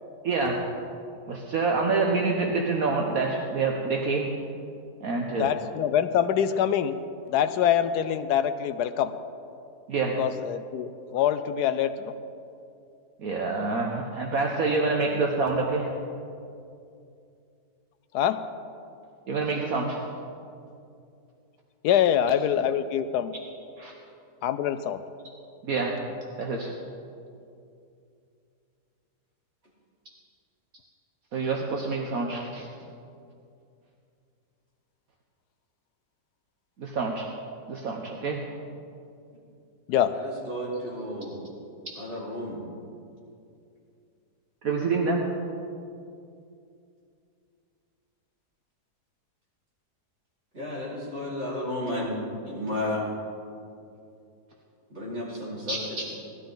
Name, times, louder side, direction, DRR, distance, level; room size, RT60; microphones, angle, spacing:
voice 1, 0.2-0.6 1.3-4.3 5.0-5.5 9.9-10.2 13.2-15.9 19.3-20.0 23.8-23.9 25.6-26.0 26.4-26.7 31.3-32.7 36.8-37.3 37.7-38.4 44.6-45.3 55.7-55.8, right 3 dB, 60° right, 0 dB, 1.4 m, -27 dB
voice 2, 5.4-7.0 7.3-9.1 10.2-12.1 18.1-18.4 21.8-23.3 24.4-25.0 39.9-40.1, left 9 dB, 80° left, 11 dB, 1.1 m, -24 dB
voice 3, 40.1-41.4 42.0-42.6 50.5-53.1 54.9-56.0, left 1 dB, 40° right, -8 dB, 4.7 m, -33 dB
18.0 x 13.0 x 3.9 m, 2.5 s
omnidirectional pair, 1.7 m